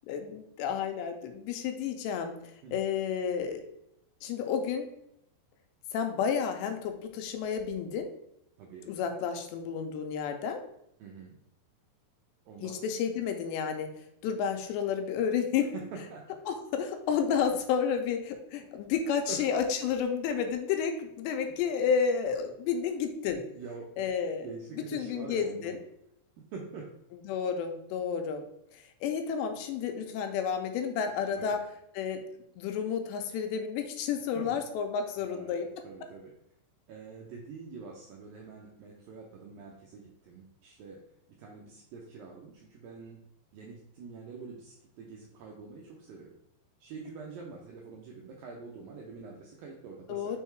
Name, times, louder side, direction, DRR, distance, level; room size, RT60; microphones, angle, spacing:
voice 1, 0.1-2.4 2.7-3.6 4.2-4.9 5.9-8.1 8.9-10.6 12.6-13.9 14.2-15.7 16.5-23.4 24.0-24.5 24.9-25.7 27.3-28.4 29.0-31.6 32.0-32.2 32.6-35.7 50.1-50.4, left 7 dB, 90° left, 5 dB, 2.9 m, -31 dB
voice 2, 8.6-8.9 11.0-11.4 12.5-12.8 15.6-16.3 19.3-19.4 23.5-24.1 24.4-25.8 26.4-26.9 31.4-31.6 34.4-34.6 35.2-35.6 35.8-36.3 36.9-41.0 41.4-43.2 43.5-46.3 46.8-50.4, right 4 dB, 80° right, -1 dB, 2.0 m, -45 dB
6.3 x 3.7 x 4.4 m, 0.79 s
omnidirectional pair, 4.9 m